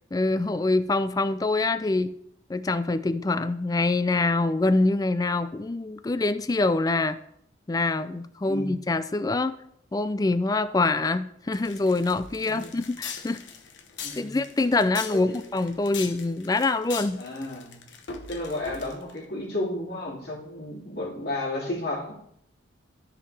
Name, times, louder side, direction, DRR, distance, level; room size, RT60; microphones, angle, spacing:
voice 1, 0.1-2.1 2.5-7.2 7.7-9.5 9.9-13.4 14.2-17.2, left 2 dB, 20° left, 13 dB, 0.3 m, -25 dB
voice 2, 8.4-8.8 12.4-12.7 14.0-14.3 15.1-15.3 17.2-17.8 18.3-22.1, left 1 dB, 55° left, -5 dB, 2.7 m, -32 dB
sound 1, 11.5-19.2, left 6 dB, 70° left, 1.0 m, -40 dB
13.0 x 4.9 x 3.3 m, 0.73 s
head